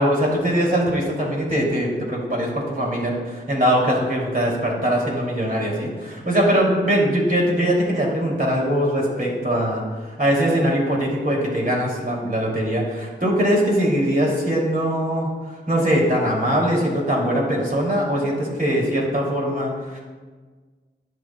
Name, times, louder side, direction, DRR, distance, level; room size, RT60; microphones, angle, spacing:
voice 1, 0.0-20.0, equal, 45° right, -3 dB, 2.9 m, -21 dB
16.5 x 6.6 x 2.4 m, 1.4 s
cardioid pair, 50°, 20 cm